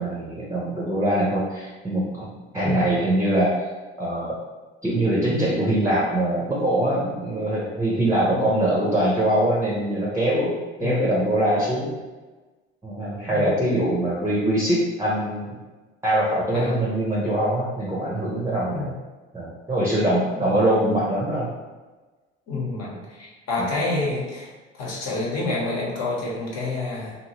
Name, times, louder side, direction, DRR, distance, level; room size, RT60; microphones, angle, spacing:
voice 1, 0.0-2.3 2.5-3.7 4.0-4.4 4.8-10.5 10.8-11.9 12.8-15.6 16.0-18.9 19.3-21.5 23.6-23.7, right 1 dB, 10° right, -6 dB, 0.7 m, -23 dB
voice 2, 8.3-8.7 10.8-11.1 13.2-13.5 16.5-16.8 18.3-18.9 20.3-20.5 22.5-27.2, left 2 dB, 50° left, -4 dB, 1.2 m, -29 dB
2.7 x 2.6 x 3.0 m, 1.2 s
hypercardioid pair, 60°, 34 cm